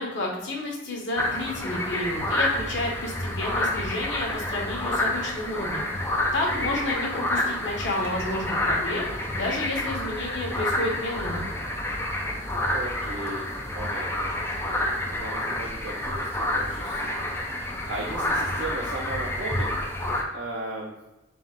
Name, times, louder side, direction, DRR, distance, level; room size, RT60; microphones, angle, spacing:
voice 1, 0.0-11.4, left 1 dB, 75° left, -2 dB, 1.1 m, -31 dB
sound 1, 1.2-20.2, left 1 dB, 15° left, 0.4 m, -29 dB
voice 2, 6.4-6.8 12.7-13.5 13.7-19.7 20.3-21.0, right 2 dB, 80° right, -3 dB, 0.6 m, -37 dB
4.1 x 2.4 x 3.7 m, 0.99 s
head